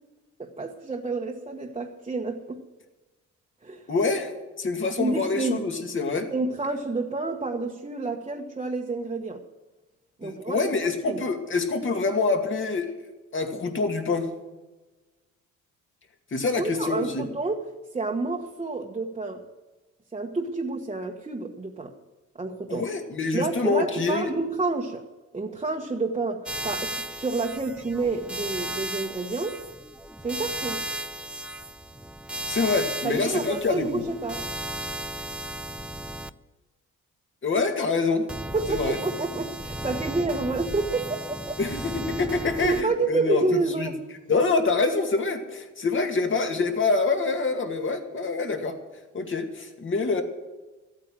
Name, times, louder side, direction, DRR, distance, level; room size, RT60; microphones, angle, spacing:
voice 1, 0.4-2.6 3.6-3.9 5.0-5.6 6.3-9.4 10.2-10.7 11.1-11.2 16.5-19.4 20.1-21.9 22.3-22.9 23.3-25.1 25.3-29.6 30.2-30.8 33.0-34.4 38.5-41.6 42.6-44.0, right 3 dB, 20° right, 0 dB, 1.3 m, -29 dB
voice 2, 3.9-4.3 4.6-6.3 10.2-13.0 13.3-14.3 16.3-17.2 22.7-24.3 32.5-34.0 37.4-38.3 38.7-39.0 41.6-43.9 44.3-48.8 49.1-50.2, left 3 dB, 40° left, 4 dB, 2.3 m, -26 dB
sound 1, 26.5-36.3 38.3-42.8, right 1 dB, 5° right, 0.5 m, -35 dB
14.5 x 8.9 x 7.5 m, 1.2 s
cardioid pair, 90°, 30 cm